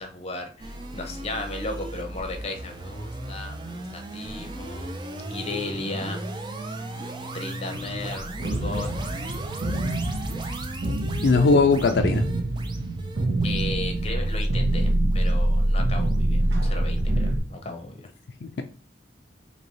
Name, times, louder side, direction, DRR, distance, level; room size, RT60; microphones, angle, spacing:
voice 1, 0.0-4.9 5.3-6.2 6.7-8.9 13.4-18.0, left 2 dB, 35° left, 0.7 m, -35 dB
sound 1, 0.6-15.8, right 2 dB, 25° right, 0.5 m, -37 dB
sound 2, 7.7-17.4, right 1 dB, 70° right, 0.8 m, -25 dB
voice 2, 11.2-12.3 18.4-18.6, left 4 dB, 70° left, 0.4 m, -19 dB
3.1 x 2.9 x 4.0 m
head